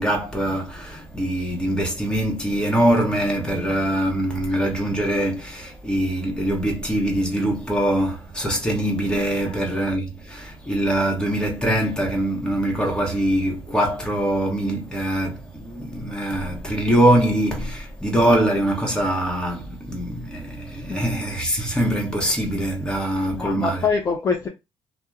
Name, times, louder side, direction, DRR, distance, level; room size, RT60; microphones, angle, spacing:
voice 1, 0.0-23.9, right 1 dB, 10° left, 1.0 m, -23 dB
voice 2, 23.3-24.5, left 5 dB, 30° left, 0.5 m, -24 dB
2.8 x 2.1 x 3.5 m
cardioid pair, 115°, 11 cm